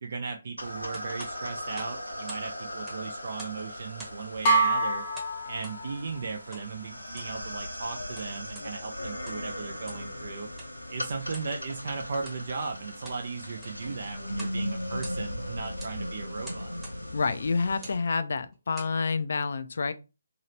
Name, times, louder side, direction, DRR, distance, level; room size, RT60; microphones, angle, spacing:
voice 1, 0.0-5.0 5.4-10.5 10.9-16.7, right 4 dB, 45° right, 0.4 m, -37 dB
sound 1, 0.6-18.0, left 1 dB, 90° left, 0.8 m, -38 dB
sound 2, 0.9-2.5 2.8-3.6 4.0-4.3 5.1-5.8 6.5-6.7 7.0-7.4 8.0-8.7 9.1-9.5 9.8-10.1 10.6-10.7 11.3-11.5 12.2-12.4 12.8-13.2 13.5-13.9 14.3-14.6 14.9-15.4 15.8-16.0 16.4-17.0 17.7-18.0 18.5-19.0, right 2 dB, 5° right, 0.9 m, -46 dB
sound 3, 4.4-6.2, right 3 dB, 25° left, 0.7 m, -26 dB
voice 2, 17.1-19.9, left 4 dB, 50° left, 0.4 m, -28 dB
2.8 x 2.8 x 3.1 m
figure-of-eight pair, 145°, 0 cm